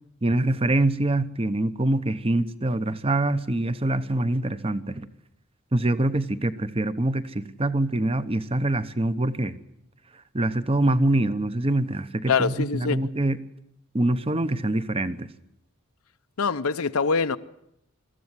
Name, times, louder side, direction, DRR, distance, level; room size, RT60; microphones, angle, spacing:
voice 1, 0.2-5.1 5.7-9.6 10.3-13.4 13.9-15.3, right 1 dB, 25° right, 0.9 m, -24 dB
voice 2, 12.3-13.0 16.4-17.4, left 5 dB, 80° left, 0.8 m, -24 dB
23.5 x 14.0 x 9.8 m
head